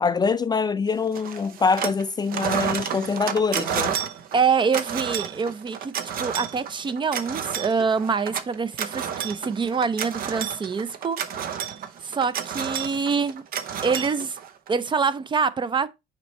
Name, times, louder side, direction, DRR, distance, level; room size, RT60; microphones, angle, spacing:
voice 1, 0.0-4.0, left 5 dB, 25° left, 0.4 m, -24 dB
sound 1, 1.1-2.0 2.3-14.7, right 8 dB, 60° right, 0.8 m, -31 dB
voice 2, 4.3-5.9 6.2-11.2 12.0-13.4 13.8-14.4 14.7-15.9, right 5 dB, 30° right, 0.5 m, -25 dB
6.0 x 4.4 x 4.2 m
cardioid pair, 110°, 17 cm